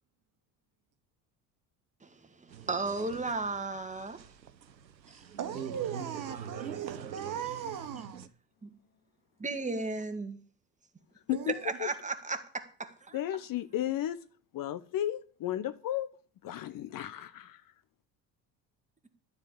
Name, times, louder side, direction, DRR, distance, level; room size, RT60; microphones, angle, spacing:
voice 1, 2.0-4.2 5.1-5.2 6.3-6.9 7.3-8.1 8.6-8.7 9.4-10.4 11.5-13.2, right 3 dB, 15° right, 2.0 m, -36 dB
sound 1, 2.5-8.3, right 8 dB, 85° right, 0.8 m, -44 dB
voice 2, 5.0-8.2 11.3-11.6, right 9 dB, 40° right, 1.8 m, -39 dB
voice 3, 13.1-14.2 14.5-16.1 16.4-17.6, left 12 dB, 40° left, 1.0 m, -34 dB
13.0 x 5.2 x 8.7 m
figure-of-eight pair, 60°, 49 cm